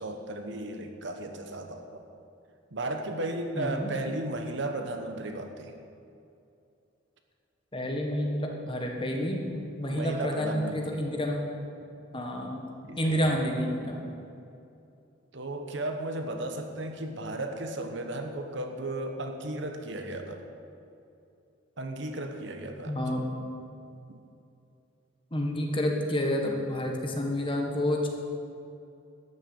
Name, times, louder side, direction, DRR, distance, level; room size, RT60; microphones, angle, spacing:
voice 1, 0.0-2.0 2.7-5.7 9.9-11.0 12.8-13.4 15.3-20.4 21.8-23.0 24.1-24.2, right 2 dB, 60° right, 5 dB, 1.1 m, -35 dB
voice 2, 3.6-3.9 7.7-11.4 12.1-12.6 13.0-14.1 22.9-23.3 25.3-28.1, equal, 25° left, 1 dB, 1.5 m, -29 dB
12.5 x 6.7 x 8.6 m, 2.6 s
head